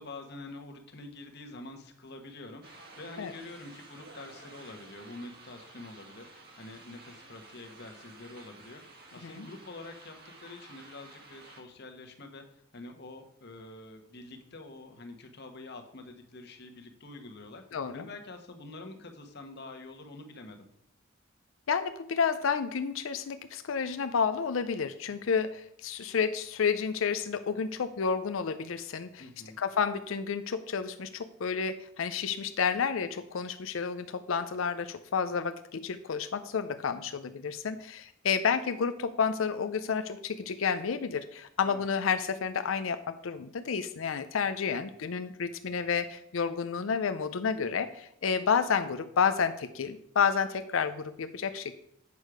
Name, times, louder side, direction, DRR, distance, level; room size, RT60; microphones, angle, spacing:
voice 1, 0.0-20.7 29.2-29.6 41.7-41.9, left 2 dB, 55° left, 4 dB, 1.3 m, -46 dB
sound 1, 2.6-11.6, right 3 dB, 50° right, 1.7 m, -52 dB
voice 2, 17.7-18.1 21.7-29.2 29.6-51.8, left 6 dB, 80° left, 10 dB, 0.5 m, -30 dB
8.4 x 6.4 x 4.9 m, 0.73 s
head